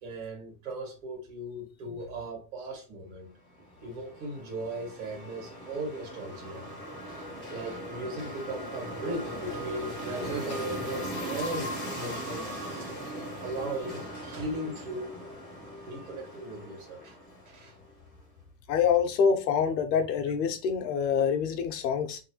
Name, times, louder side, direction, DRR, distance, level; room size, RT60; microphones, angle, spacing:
voice 1, 0.0-3.4 3.8-6.7 7.1-12.9 13.4-15.2 15.9-17.2 17.5-17.7, right 1 dB, 55° right, 1.7 m, -38 dB
sound 1, 3.6-17.9, right 1 dB, 5° left, 0.4 m, -39 dB
voice 2, 18.7-22.2, left 6 dB, 85° left, 0.9 m, -26 dB
3.0 x 2.4 x 3.0 m
supercardioid pair, 165°, 48 cm